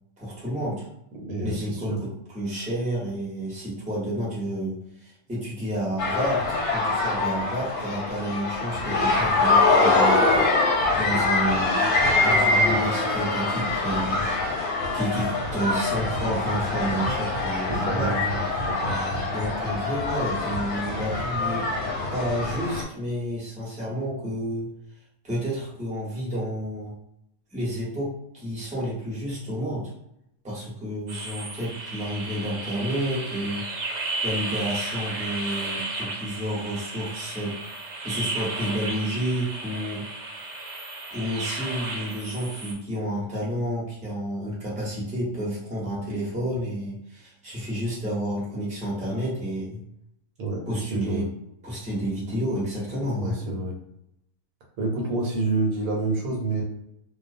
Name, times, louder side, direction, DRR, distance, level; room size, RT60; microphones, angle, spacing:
voice 1, 0.2-0.9 1.4-10.3 11.0-11.8 12.1-14.2 14.9-18.2 18.4-18.6 19.3-21.7 22.1-24.7 25.2-26.9 27.5-29.9 30.4-33.6 33.9-37.5 38.0-40.0 41.1-49.8 50.7-51.3 51.6-53.4, equal, 5° right, -6 dB, 0.7 m, -30 dB
voice 2, 1.2-2.0 17.7-18.4 18.8-19.3 50.4-51.3 53.2-53.7 54.8-56.6, right 2 dB, 70° right, -1 dB, 1.1 m, -28 dB
sound 1, 6.0-22.8, left 3 dB, 90° left, 1.2 m, -24 dB
sound 2, 31.1-42.7, right 2 dB, 90° right, 0.4 m, -33 dB
2.3 x 2.3 x 2.5 m, 0.79 s
omnidirectional pair, 1.6 m